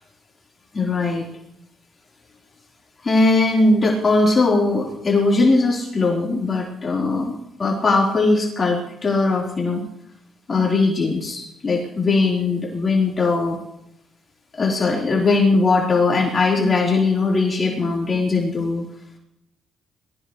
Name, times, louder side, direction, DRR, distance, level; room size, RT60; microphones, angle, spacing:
voice 1, 0.7-1.3 3.0-9.8 10.5-13.6 14.6-18.9, left 3 dB, 35° left, -2 dB, 4.6 m, -19 dB
21.5 x 15.0 x 3.4 m, 0.81 s
cardioid pair, 90°, 0 cm